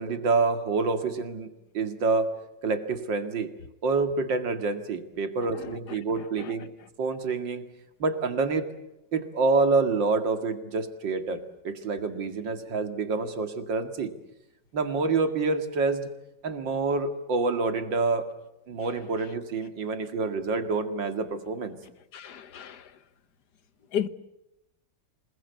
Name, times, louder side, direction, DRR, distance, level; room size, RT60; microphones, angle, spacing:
voice 1, 0.0-2.3 2.6-3.5 3.8-6.7 7.0-7.6 8.0-8.7 9.1-14.1 14.7-16.1 16.4-18.3 18.7-21.8, right 4 dB, 90° right, 2.8 m, -27 dB
voice 2, 22.1-22.9 23.9-24.1, left 9 dB, 65° left, 1.6 m, -33 dB
27.5 x 20.5 x 8.2 m
omnidirectional pair, 1.9 m